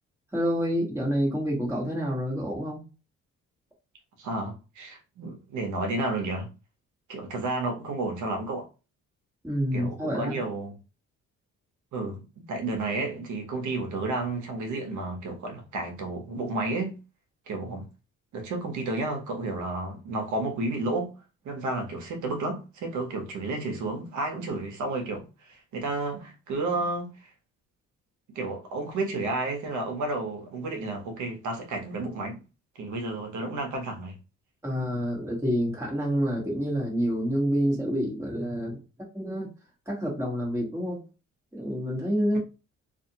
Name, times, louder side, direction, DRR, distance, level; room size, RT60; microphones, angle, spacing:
voice 1, 0.3-2.9 9.4-10.4 34.6-38.8 39.1-39.5 39.9-41.0 41.5-42.4, equal, 10° right, 1.3 m, -28 dB
voice 2, 4.2-6.5 7.1-8.7 9.7-10.8 11.9-17.0 17.5-17.9 18.3-21.2 21.4-27.3 28.3-32.4 32.7-34.2, right 2 dB, 75° right, 1.0 m, -31 dB
2.5 x 2.4 x 2.8 m
cardioid pair, 90°, 30 cm